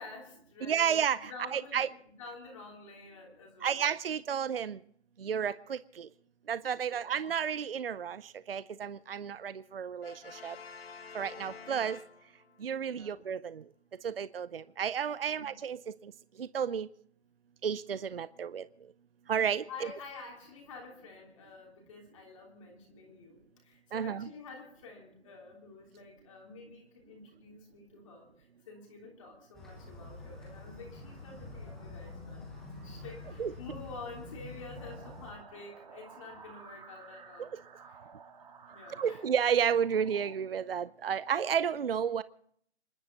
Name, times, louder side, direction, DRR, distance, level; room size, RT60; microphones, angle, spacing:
voice 1, 0.0-3.8 6.9-7.1 11.5-11.6 12.9-13.1 15.2-15.6 19.4-37.5 37.8-38.1 38.7-39.3, left 3 dB, 30° left, -1 dB, 3.4 m, -49 dB
voice 2, 0.6-1.9 3.6-4.8 5.2-6.1 6.5-8.2 8.5-10.1 10.4-10.6 11.1-12.0 12.6-13.6 14.0-15.8 16.4-16.9 17.6-18.6 19.3-19.6 23.9-24.3 33.4-33.5 37.4-37.5 39.0-42.2, right 8 dB, 55° right, 17 dB, 0.6 m, -31 dB
Brass instrument, 10.0-12.7, left 5 dB, 60° left, 1.9 m, -48 dB
sound 1, 29.5-35.3, left 2 dB, ahead, 0.9 m, -46 dB
sound 2, 34.8-40.3, right 6 dB, 35° right, 3.0 m, -53 dB
27.5 x 12.0 x 4.0 m, 0.63 s
figure-of-eight pair, 160°, 35 cm